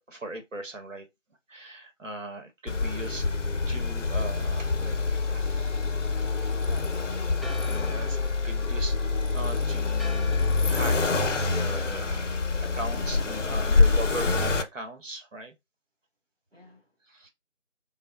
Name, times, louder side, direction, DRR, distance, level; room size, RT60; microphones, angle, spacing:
voice 1, 0.1-1.1 1.5-3.3 3.7-5.0 5.3-6.0 6.5-6.7 7.7-8.2 8.4-9.0 9.3-11.0 11.2-12.3 12.5-15.5 17.0-17.3, right 2 dB, 85° right, 0.9 m, -39 dB
Accelerating revving vroom, 2.7-14.6, left 3 dB, 70° left, 0.5 m, -26 dB
Church bell, 7.4-13.7, left 1 dB, ahead, 0.3 m, -46 dB
voice 2, 16.5-16.9, left 1 dB, 55° right, 0.7 m, -54 dB
3.7 x 2.0 x 2.2 m
figure-of-eight pair, 180°, 37 cm